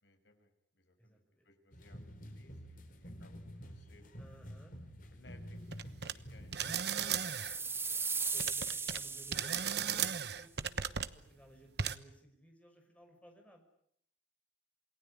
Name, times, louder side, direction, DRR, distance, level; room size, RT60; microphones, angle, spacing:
voice 1, 0.0-4.1 5.1-6.7, left 2 dB, 70° left, 5 dB, 6.1 m, -63 dB
voice 2, 1.0-1.5 4.2-4.8 7.0-8.0 8.3-13.6, right 1 dB, 5° left, 3 dB, 5.7 m, -60 dB
sound 1, 1.7-6.8, equal, 45° left, 4.5 m, -49 dB
sound 2, 5.7-6.1 6.5-7.6 8.4-9.0 9.3-11.1 11.8-12.0, right 8 dB, 60° right, 1.1 m, -35 dB
sound 3, 6.9-10.1, right 5 dB, 10° right, 1.2 m, -38 dB
28.0 x 19.5 x 9.9 m, 0.70 s
head